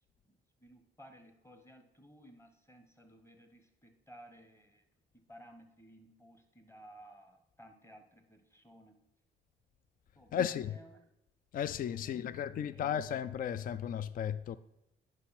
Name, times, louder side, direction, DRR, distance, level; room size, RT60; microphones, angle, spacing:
voice 1, 0.2-4.8 5.1-9.0 10.1-11.0 12.0-12.9, equal, 15° left, 1.3 m, -57 dB
voice 2, 10.3-10.8 11.5-14.6, left 9 dB, 45° left, 0.4 m, -34 dB
9.7 x 5.9 x 4.3 m
cardioid pair, 90°, 20 cm